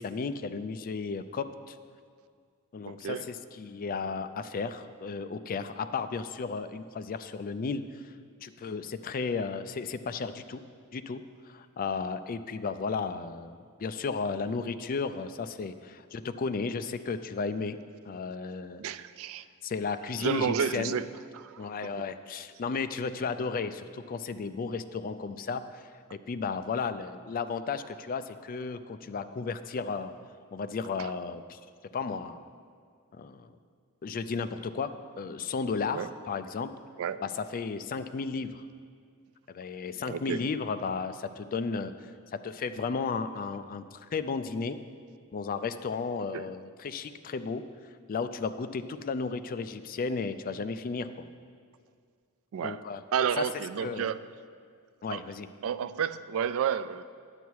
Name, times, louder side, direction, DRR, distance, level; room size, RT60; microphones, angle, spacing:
voice 1, 0.0-1.8 2.7-8.0 8.4-10.6 10.9-17.8 18.1-18.8 19.6-21.0 21.6-25.7 26.1-30.1 30.5-31.6 31.9-32.4 33.1-33.5 34.0-36.7 37.2-38.6 39.5-41.9 42.3-44.8 45.3-47.6 48.1-51.1 52.6-53.0 53.4-53.5 53.8-54.1 55.0-55.5, left 4 dB, 40° left, 11 dB, 0.4 m, -34 dB
voice 2, 2.9-3.2 18.8-19.5 20.2-21.1 21.3-21.9 31.0-31.1 35.9-36.1 37.0-37.2 40.1-40.4 46.3-46.5 52.5-52.8 53.1-54.2 55.1-55.2 55.6-57.0, right 8 dB, 65° right, 13 dB, 0.3 m, -31 dB
9.7 x 8.2 x 4.6 m, 2.1 s
head